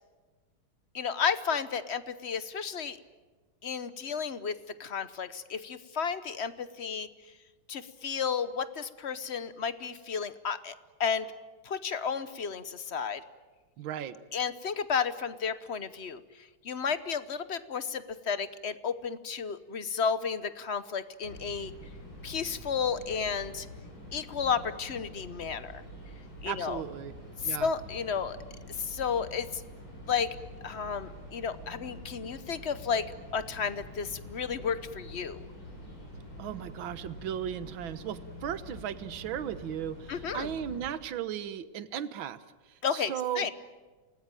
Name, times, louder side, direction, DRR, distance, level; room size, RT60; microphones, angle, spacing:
voice 1, 0.9-3.0 3.6-7.1 7.7-10.7 11.0-11.3 11.6-13.2 14.3-16.2 16.6-21.7 22.2-23.7 24.1-25.8 26.4-26.8 27.4-28.4 28.8-29.6 30.1-30.3 30.6-35.4 40.1-40.5 42.8-43.5, left 6 dB, 45° left, 14 dB, 0.8 m, -32 dB
voice 2, 13.8-14.2 26.4-27.1 27.5-27.7 36.4-42.4 42.7-43.5, right 9 dB, 70° right, 13 dB, 1.8 m, -36 dB
sound 1, 21.2-40.9, left 1 dB, 75° left, 8.6 m, -46 dB
28.5 x 19.5 x 9.1 m, 1.3 s
omnidirectional pair, 2.3 m